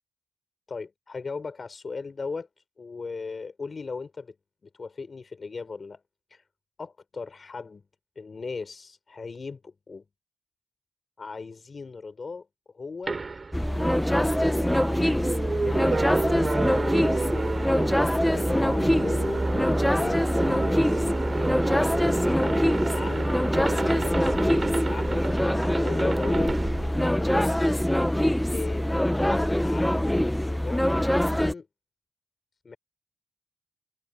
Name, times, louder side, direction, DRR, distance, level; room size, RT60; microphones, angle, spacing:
voice 1, 0.7-2.5 2.8-4.3 4.6-6.0 6.3-6.4 6.8-7.9 8.2-10.0 11.2-12.5 12.7-13.2 14.2-15.0 15.5-17.9 18.1-19.5 19.8-20.3 20.7-21.3 21.7-22.6 22.9-26.5 26.8-27.8 28.5-31.7 32.6-32.8, left 4 dB, 30° left, 3.5 m, -38 dB
sound 1, 13.1-27.6, right 3 dB, 25° right, 3.5 m, -30 dB
sound 2, 13.5-31.5, left 1 dB, 5° left, 0.7 m, -24 dB
wide cardioid pair, 155°, 0 cm